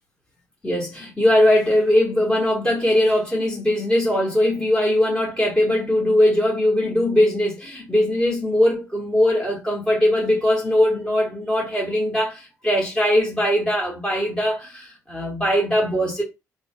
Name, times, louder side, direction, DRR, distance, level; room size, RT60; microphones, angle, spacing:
voice 1, 0.6-16.2, left 1 dB, 15° left, 2.7 m, -20 dB
4.2 x 3.6 x 2.6 m
cardioid pair, 155°, 6 cm